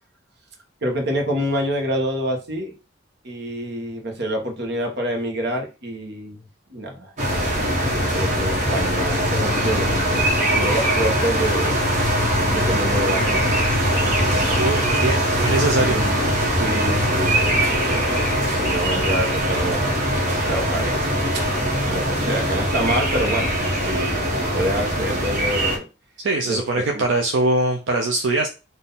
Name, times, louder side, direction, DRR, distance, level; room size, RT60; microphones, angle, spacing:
voice 1, 0.8-2.7 3.2-6.4 6.7-7.1 7.9-10.3 10.5-11.8 12.5-14.0 15.8-16.2 16.5-20.0 20.4-21.4 21.9-23.5 23.8-25.9 26.5-27.0, equal, 65° right, 2 dB, 1.2 m, -27 dB
sound 1, 7.2-25.8, equal, 40° right, 1.4 m, -21 dB
voice 2, 14.6-16.0 17.9-18.0 26.2-28.5, right 2 dB, 80° right, 3 dB, 0.6 m, -22 dB
3.9 x 2.6 x 4.0 m, 0.30 s
head